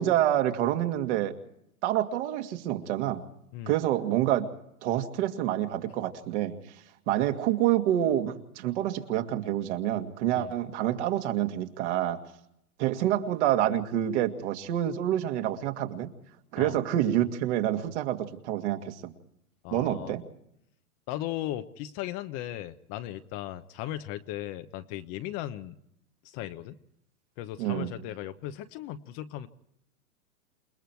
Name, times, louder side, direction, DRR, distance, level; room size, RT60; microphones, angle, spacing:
voice 1, 0.0-1.3 1.8-3.2 3.7-4.4 4.8-6.6 7.1-12.2 12.8-16.1 16.5-19.1 19.7-20.2 27.6-27.9, right 12 dB, 50° right, 5 dB, 2.3 m, -27 dB
voice 2, 19.6-20.2 21.1-25.8 26.2-26.8 27.4-29.5, left 13 dB, 30° left, 10 dB, 1.0 m, -37 dB
28.5 x 19.5 x 4.6 m, 0.76 s
hypercardioid pair, 135°, 44 cm